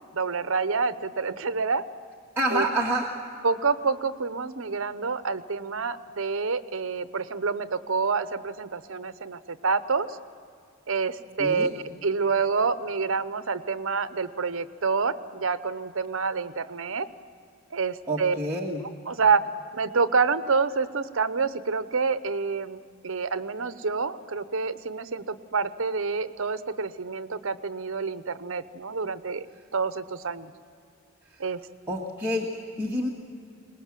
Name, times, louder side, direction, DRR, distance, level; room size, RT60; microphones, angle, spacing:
voice 1, 0.1-1.8 2.5-2.7 3.4-10.1 10.9-17.1 17.7-18.4 19.1-19.5 19.7-29.5 29.7-30.5 31.4-31.6, right 4 dB, 65° right, 13 dB, 0.8 m, -27 dB
voice 2, 2.4-3.1 11.4-11.7 18.1-18.8 31.9-33.1, right 1 dB, 10° right, -5 dB, 1.8 m, -28 dB
23.0 x 19.5 x 7.5 m, 2.3 s
head